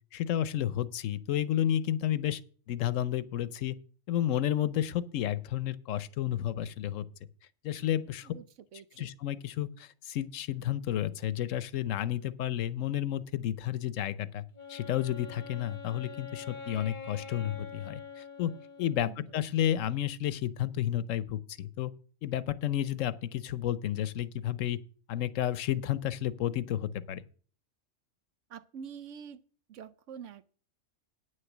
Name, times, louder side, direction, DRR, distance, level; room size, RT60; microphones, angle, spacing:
voice 1, 0.1-2.4 2.7-3.8 4.1-7.1 7.6-8.3 9.0-14.4 14.7-18.5 18.8-21.9 22.2-24.8 25.1-27.2, left 11 dB, 85° left, 1.0 m, -31 dB
voice 2, 8.7-9.1 19.0-19.2 28.5-29.4 29.7-30.6, right 7 dB, 75° right, 1.0 m, -46 dB
Wind instrument woodwind instrument, 14.5-19.3, left 5 dB, 45° left, 0.8 m, -45 dB
9.2 x 6.6 x 7.1 m
omnidirectional pair, 1.3 m